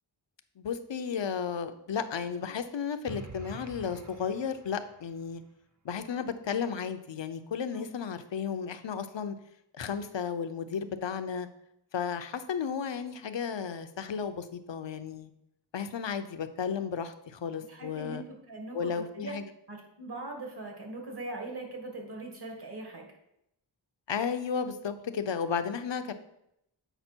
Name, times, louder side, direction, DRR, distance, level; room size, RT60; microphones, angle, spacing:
voice 1, 0.6-5.4 5.8-9.4 9.7-11.5 11.9-15.3 15.7-18.2 18.7-19.4 24.1-26.1, left 7 dB, 75° left, 9 dB, 0.7 m, -33 dB
sound 1, 3.1-5.1, right 4 dB, 40° right, 0.6 m, -46 dB
voice 2, 17.7-19.3 19.7-23.1, right 2 dB, 60° right, 1 dB, 2.2 m, -41 dB
8.0 x 5.1 x 4.5 m, 0.79 s
wide cardioid pair, 55°, 45 cm